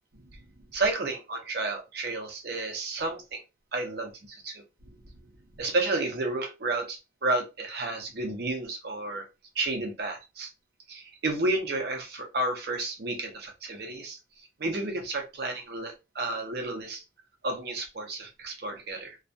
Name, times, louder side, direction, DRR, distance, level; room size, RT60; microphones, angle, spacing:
voice 1, 0.7-3.4 3.7-5.0 5.6-9.3 9.6-10.5 10.9-14.2 14.6-17.0 17.4-19.2, right 2 dB, 55° right, 3 dB, 0.6 m, -31 dB
2.3 x 2.2 x 2.5 m, 0.26 s
head